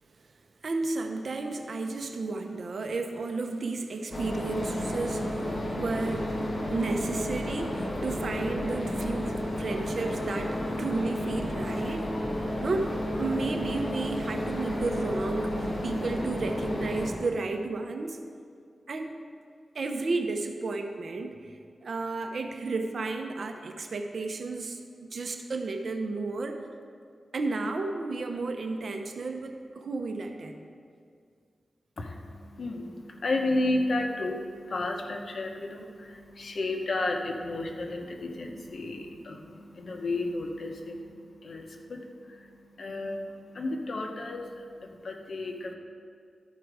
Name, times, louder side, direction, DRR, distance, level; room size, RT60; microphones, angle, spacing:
voice 1, 0.6-5.5 5.8-6.3 6.7-12.1 12.6-18.2 18.9-19.1 19.7-21.5 21.8-26.6 27.3-30.6, right 3 dB, 65° right, 6 dB, 0.7 m, -32 dB
sound 1, 4.1-17.1, left 1 dB, 45° left, 1.7 m, -32 dB
voice 2, 32.0-45.7, left 2 dB, 65° left, 3 dB, 0.9 m, -33 dB
12.5 x 4.9 x 4.7 m, 2.2 s
cardioid pair, 70°, 0 cm